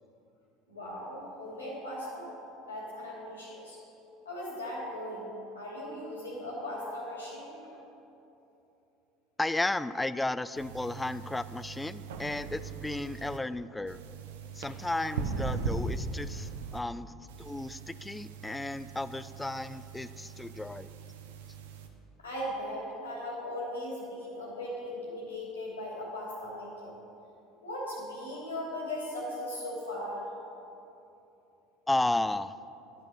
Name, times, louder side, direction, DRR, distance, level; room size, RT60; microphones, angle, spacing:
voice 1, 0.7-2.3 2.7-3.8 4.2-5.3 5.5-7.7 22.2-27.0 27.6-30.2, left 1 dB, 90° left, -4 dB, 2.7 m, -38 dB
voice 2, 9.4-14.0 14.6-20.9 31.9-32.6, left 2 dB, 10° left, 15 dB, 0.3 m, -33 dB
sound 1, 10.5-13.4 13.9-16.8 17.3-21.9, right 4 dB, 75° right, 0.8 m, -39 dB
11.5 x 6.0 x 6.7 m, 2.9 s
hypercardioid pair, 70°, 0 cm